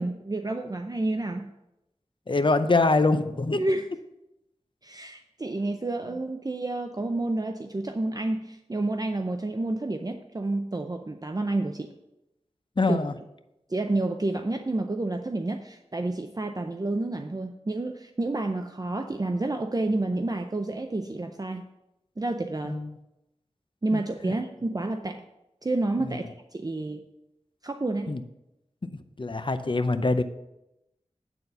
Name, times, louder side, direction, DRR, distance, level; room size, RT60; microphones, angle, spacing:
voice 1, 0.0-1.4 3.6-3.8 4.8-11.9 12.9-13.0 13.7-21.7 22.2-22.8 23.8-25.2 25.6-27.0 27.6-28.1, right 2 dB, 30° right, 5 dB, 0.5 m, -29 dB
voice 2, 2.3-3.6 12.8-13.1 22.6-22.9 23.9-24.3 26.0-26.2 28.1-28.2 28.8-30.2, left 3 dB, 45° left, 10 dB, 0.6 m, -25 dB
9.0 x 4.1 x 6.7 m, 0.90 s
wide cardioid pair, 60°, 12 cm